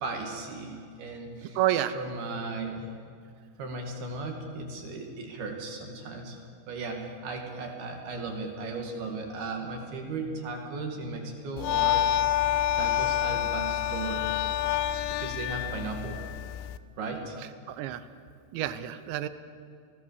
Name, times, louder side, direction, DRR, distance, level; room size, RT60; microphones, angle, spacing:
voice 1, 0.0-1.6 1.9-2.9 3.6-12.1 12.7-14.2 15.1-16.2 17.0-17.4, right 3 dB, 55° right, 2 dB, 3.9 m, -36 dB
voice 2, 1.4-2.0 17.7-18.1 18.5-19.3, right 12 dB, 75° right, 12 dB, 3.1 m, -29 dB
sound 1, 11.6-16.8, left 11 dB, 80° left, 3.0 m, -28 dB
29.5 x 18.5 x 7.0 m, 2.3 s
omnidirectional pair, 5.6 m